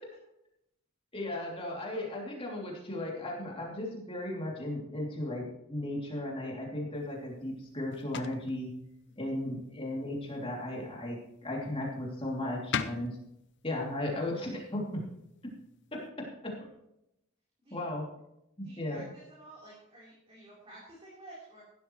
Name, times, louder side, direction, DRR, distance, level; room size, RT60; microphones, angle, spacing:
voice 1, 1.1-8.7 9.2-13.2 13.6-15.0 15.9-16.6 17.7-18.1 18.6-19.0, left 1 dB, 25° left, -2 dB, 2.9 m, -36 dB
sound 1, 6.9-16.1, left 7 dB, 55° left, 0.7 m, -44 dB
voice 2, 18.6-21.6, right 1 dB, 25° right, -7 dB, 4.0 m, -52 dB
15.5 x 12.5 x 3.2 m, 0.82 s
head